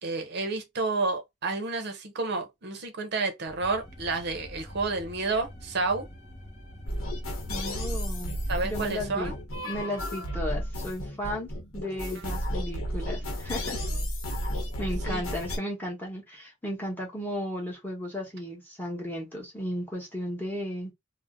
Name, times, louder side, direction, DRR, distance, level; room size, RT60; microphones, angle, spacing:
voice 1, 0.0-6.1 8.5-9.3 12.1-12.2 15.1-15.2, right 3 dB, 50° right, 0.6 m, -30 dB
sound 1, 3.5-9.4, equal, 35° left, 0.9 m, -46 dB
sound 2, 6.9-15.6, equal, 70° left, 0.9 m, -33 dB
voice 2, 7.5-8.4 8.6-9.3 9.6-13.8 14.8-20.9, equal, 10° left, 1.0 m, -35 dB
2.6 x 2.0 x 3.5 m
head